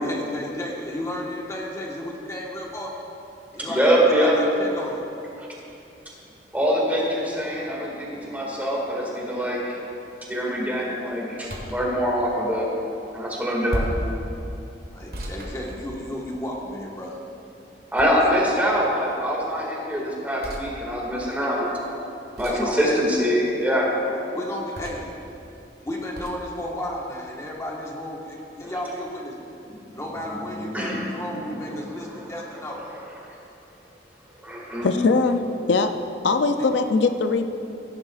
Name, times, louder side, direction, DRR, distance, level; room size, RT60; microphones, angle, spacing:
voice 1, 0.0-2.9 3.5-5.0 14.9-17.2 18.1-18.3 22.5-23.0 24.3-25.1 25.8-29.4 29.9-32.8 36.5-36.7, left 1 dB, 15° left, -2 dB, 1.3 m, -33 dB
voice 2, 3.7-4.4 6.5-9.8 10.3-12.7 13.1-13.9 17.9-21.7 22.4-23.9 30.7-31.0 34.5-34.9, equal, 10° right, -4 dB, 2.0 m, -24 dB
sound 1, 11.4-11.9 13.7-14.1 15.1-16.3 18.0-18.6 20.4-20.7 22.4-22.7 24.7-25.2 26.1-26.4, equal, 60° right, 1.6 m, -32 dB
voice 3, 34.8-35.4 35.7-35.9 36.2-37.4, left 4 dB, 80° left, 7 dB, 0.5 m, -20 dB
16.0 x 10.5 x 2.4 m, 2.8 s
head